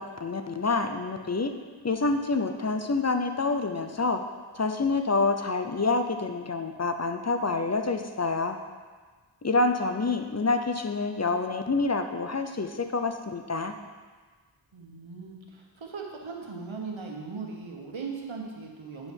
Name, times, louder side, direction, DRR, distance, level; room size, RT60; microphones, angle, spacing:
voice 1, 0.0-1.5 1.8-4.2 4.5-8.6 9.4-13.7, left 3 dB, 35° left, 7 dB, 0.7 m, -27 dB
voice 2, 14.7-19.1, right 4 dB, 85° right, 0 dB, 1.3 m, -38 dB
9.9 x 5.5 x 4.5 m, 1.4 s
wide cardioid pair, 50°, 46 cm